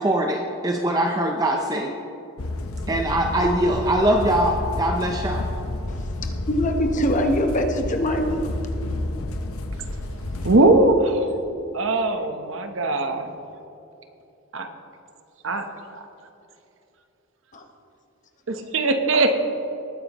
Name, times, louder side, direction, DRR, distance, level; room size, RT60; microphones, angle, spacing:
voice 1, 0.0-1.9 2.9-5.4, right 1 dB, 15° right, 2 dB, 0.6 m, -22 dB
sound 1, 2.4-10.6, left 1 dB, 80° left, 0.8 m, -30 dB
voice 2, 6.5-8.5 17.5-17.6, equal, 35° left, 4 dB, 0.9 m, -23 dB
voice 3, 10.4-11.3 11.7-13.3 14.5-14.7 15.4-15.7 15.9-16.0 18.5-19.4, right 2 dB, 60° right, 6 dB, 1.0 m, -20 dB
19.5 x 9.6 x 3.0 m, 2.9 s
head